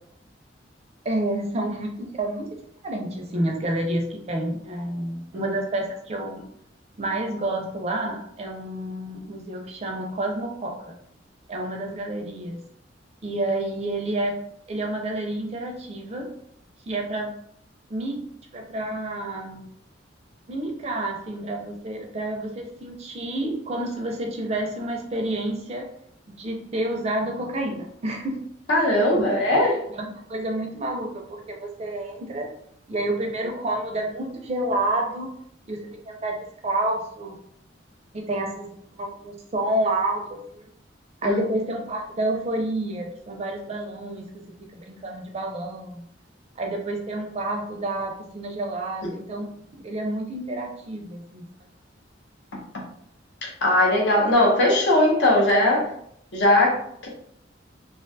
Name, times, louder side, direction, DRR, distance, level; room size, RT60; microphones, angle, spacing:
voice 1, 1.0-2.5 2.8-6.4 7.0-11.0 11.5-12.6 13.2-14.4 14.7-16.3 16.9-17.3 17.9-18.2 18.5-19.7 20.5-25.9 26.3-28.4 29.1-29.3 30.0-32.5 32.9-35.3 35.7-36.4 36.6-37.4 38.1-40.6 41.2-44.4 44.7-46.0 46.6-49.5 49.8-51.5, right 1 dB, 35° right, 2 dB, 0.4 m, -29 dB
voice 2, 28.7-29.8 41.2-41.4 53.4-55.9 56.3-57.1, left 1 dB, 65° left, -2 dB, 0.7 m, -20 dB
2.3 x 2.2 x 2.6 m, 0.69 s
head